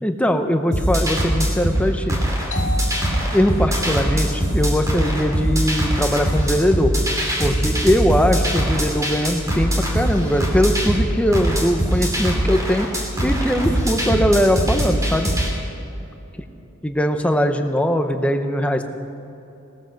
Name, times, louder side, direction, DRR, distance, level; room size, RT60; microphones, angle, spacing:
voice 1, 0.0-2.2 3.3-6.9 7.4-12.9 13.2-15.3 16.8-18.8, equal, 5° left, 6 dB, 0.8 m, -20 dB
sound 1, 0.7-15.5, equal, 15° right, 2.8 m, -22 dB
Doorbell, 2.5-7.9, left 2 dB, 35° left, 1.6 m, -39 dB
17.5 x 14.0 x 5.3 m, 2.9 s
head